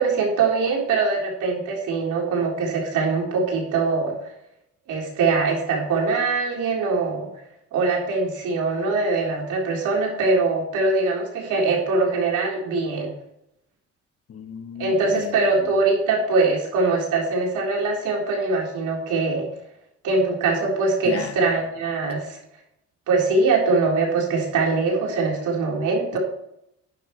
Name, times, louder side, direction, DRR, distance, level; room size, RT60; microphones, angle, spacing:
voice 1, 0.0-4.2 4.9-7.3 7.7-13.1 14.8-19.5 20.0-22.4 23.1-26.2, right 3 dB, 85° right, 4.0 m, -22 dB
voice 2, 14.3-15.5 21.0-21.4 26.1-26.2, left 8 dB, 50° left, 1.0 m, -34 dB
11.5 x 10.0 x 3.2 m
cardioid pair, 90°, 30 cm